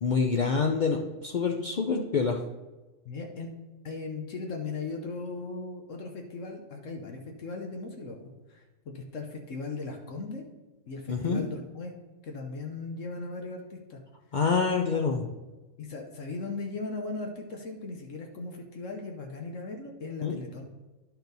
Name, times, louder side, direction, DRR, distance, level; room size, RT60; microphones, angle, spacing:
voice 1, 0.0-2.4 11.1-11.4 14.3-15.3 20.2-20.4, left 5 dB, 55° left, 1 dB, 0.5 m, -26 dB
voice 2, 3.0-3.5 3.8-8.6 8.9-10.4 10.9-11.9 12.2-14.0 15.8-20.7, left 3 dB, 70° left, 2 dB, 1.2 m, -38 dB
11.5 x 4.5 x 4.0 m, 1.1 s
omnidirectional pair, 1.4 m